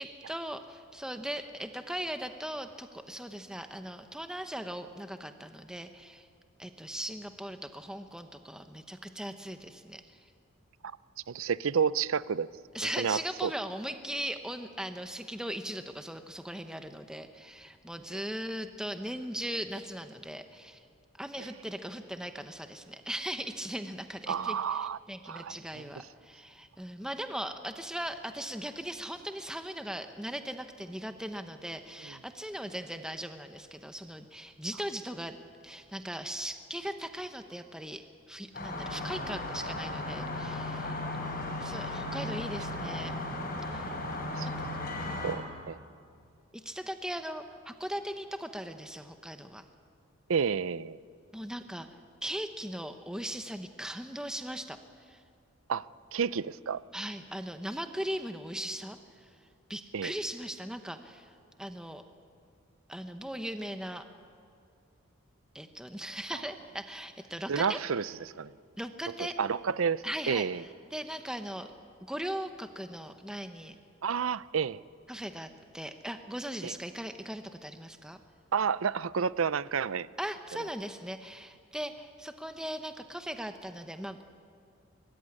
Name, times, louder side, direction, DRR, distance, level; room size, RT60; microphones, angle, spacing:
voice 1, 0.0-6.3 6.6-10.2 12.7-20.9 21.1-35.4 35.6-43.1 43.7-43.9 45.1-45.4 46.5-49.6 51.3-51.9 52.2-55.2 56.9-59.3 59.7-61.3 61.6-62.0 62.9-64.0 65.5-67.8 68.8-69.4 70.0-70.7 70.9-71.7 72.1-73.8 75.1-78.2 80.2-84.2, equal, 5° right, 7 dB, 0.9 m, -39 dB
voice 2, 11.3-12.5 13.0-13.5 24.3-25.0 25.3-25.8 32.1-32.2 44.3-44.5 45.2-45.8 50.3-51.0 55.7-55.9 56.1-56.8 59.9-60.1 67.5-68.5 69.2-70.6 74.0-74.8 76.6-76.7 78.5-80.1, right 6 dB, 75° right, 18 dB, 0.5 m, -30 dB
sound 1, 38.5-45.4, left 2 dB, 45° left, 5.3 m, -36 dB
24.0 x 20.0 x 9.8 m, 2.4 s
head